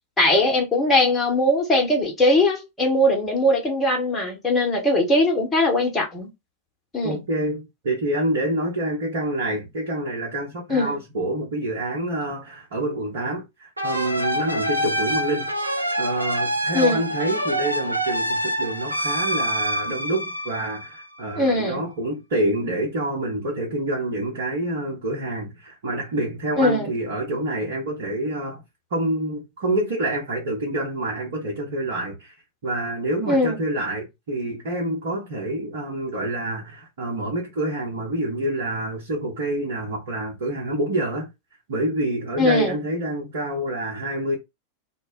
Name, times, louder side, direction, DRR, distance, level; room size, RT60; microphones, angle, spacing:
voice 1, 0.2-6.3 6.9-7.2 10.7-10.9 16.7-17.0 21.4-21.8 26.6-26.9 33.3-33.6 42.4-42.8, left 1 dB, 15° left, 0.9 m, -20 dB
voice 2, 7.0-15.5 16.0-28.6 28.9-32.3 32.6-41.3 41.7-44.4, right 1 dB, 55° right, 0.9 m, -27 dB
sound 1, 13.8-21.2, equal, 85° right, 0.3 m, -26 dB
2.1 x 2.0 x 3.6 m
figure-of-eight pair, 90°, 0 cm